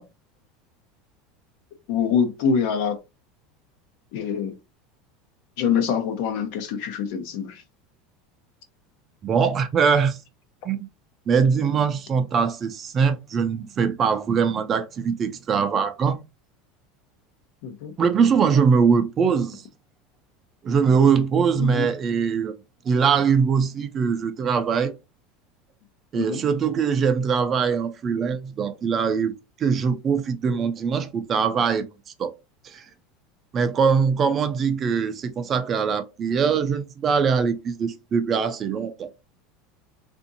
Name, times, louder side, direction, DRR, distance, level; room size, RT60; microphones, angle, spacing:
voice 1, 1.9-3.0 4.1-4.6 5.6-7.6 17.6-17.9 21.6-21.9 26.1-26.4, left 7 dB, 65° left, 0.8 m, -25 dB
voice 2, 9.2-10.2 10.6-10.9 11.3-16.2 18.0-19.6 20.6-22.6 22.8-24.9 26.1-29.3 29.6-31.9 32.2-32.3 32.6-32.8 33.5-39.1, right 6 dB, 30° right, 0.5 m, -22 dB
3.5 x 2.6 x 2.7 m
supercardioid pair, 145°, 0 cm